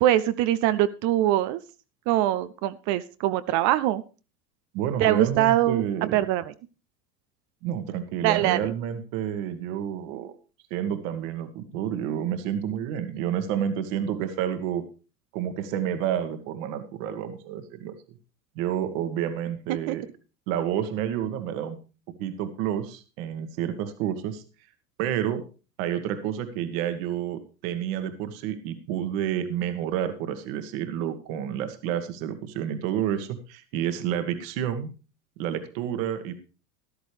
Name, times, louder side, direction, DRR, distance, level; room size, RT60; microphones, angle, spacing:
voice 1, 0.0-1.6 2.1-4.0 5.0-6.4 8.2-8.7 19.9-20.0, right 13 dB, 40° right, 14 dB, 0.6 m, -23 dB
voice 2, 4.7-6.2 7.6-10.4 10.7-14.8 15.3-17.9 18.6-20.0 20.5-21.8 22.2-24.4 25.0-25.4 25.8-34.9 35.4-36.3, right 10 dB, 55° right, 9 dB, 1.7 m, -29 dB
13.5 x 13.0 x 3.3 m, 0.34 s
figure-of-eight pair, 80°, 48 cm